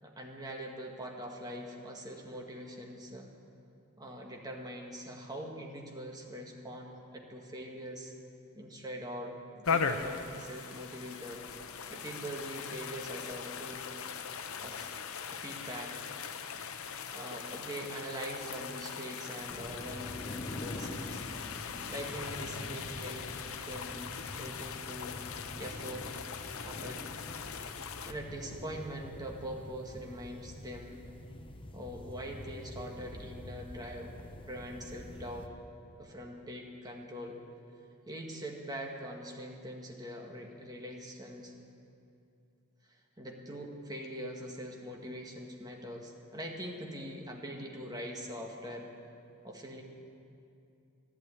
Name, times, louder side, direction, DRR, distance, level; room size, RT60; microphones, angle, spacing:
voice 1, 0.0-3.3 4.0-8.1 8.5-11.4 11.9-13.9 14.6-14.9 15.3-16.0 17.1-21.2 21.9-25.2 25.6-26.1 26.6-27.0 28.0-31.1 31.7-35.5 36.0-37.4 38.1-41.5 43.2-48.9 49.4-49.8, equal, 20° right, 0 dB, 1.7 m, -43 dB
sound 1, 9.6-28.1, left 6 dB, 75° left, 0.8 m, -40 dB
sound 2, 19.5-35.5, left 1 dB, 25° left, 0.8 m, -46 dB
12.0 x 11.5 x 8.9 m, 2.6 s
head